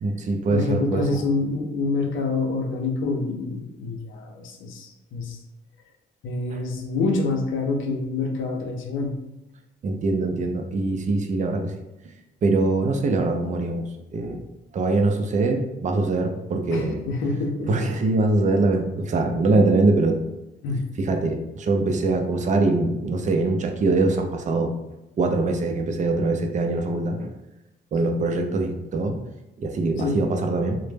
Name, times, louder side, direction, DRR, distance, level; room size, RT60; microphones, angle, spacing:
voice 1, 0.0-1.0 6.5-6.6 9.8-11.7 12.4-13.8 14.1-14.4 14.7-17.0 17.7-20.2 21.0-24.7 25.2-27.3 27.9-29.2 29.6-30.8, right 3 dB, 40° right, 4 dB, 0.4 m, -23 dB
voice 2, 0.5-5.4 6.2-9.2 16.7-17.9 20.6-20.8 30.0-30.2, left 3 dB, 80° left, 2 dB, 0.5 m, -26 dB
2.0 x 2.0 x 3.2 m, 0.97 s
cardioid pair, 90°, 20 cm